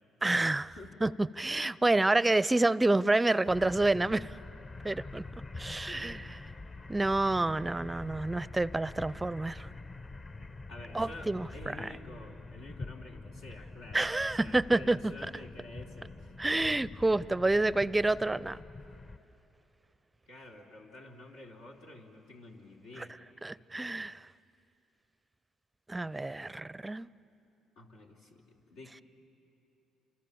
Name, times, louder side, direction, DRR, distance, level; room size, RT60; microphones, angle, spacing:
voice 1, 0.2-0.7 1.0-4.4 4.8-5.2 5.6-6.2 6.9-9.7 10.9-11.5 11.8-11.9 13.9-15.0 16.4-18.6 23.0-23.1 23.4-24.2 25.9-27.1, right 2 dB, 20° right, 20 dB, 0.5 m, -28 dB
sound 1, 3.5-19.2, left 3 dB, 40° left, 1.2 m, -46 dB
voice 2, 5.9-6.2 10.7-16.3 20.3-23.2 27.8-29.0, left 2 dB, 85° left, -2 dB, 3.0 m, -49 dB
29.5 x 27.0 x 7.0 m, 3.0 s
hypercardioid pair, 55°, 0 cm